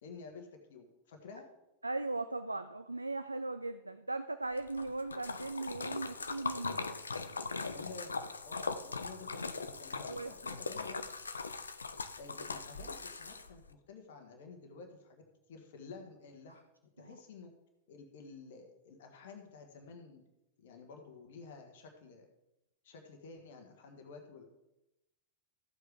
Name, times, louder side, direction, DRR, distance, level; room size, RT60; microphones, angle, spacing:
voice 1, 0.0-1.4 7.7-8.1 8.4-11.1 12.2-16.6 17.0-17.5 17.9-20.2 20.6-22.3 22.8-24.4, left 4 dB, 55° left, 4 dB, 1.6 m, -51 dB
voice 2, 1.8-7.0 10.0-10.3 17.0-17.1, right 2 dB, 85° right, 11 dB, 0.4 m, -38 dB
Splash splatter, 4.6-13.7, left 4 dB, 75° left, 0.6 m, -40 dB
14.0 x 7.9 x 3.5 m, 0.92 s
figure-of-eight pair, 90°, 0 cm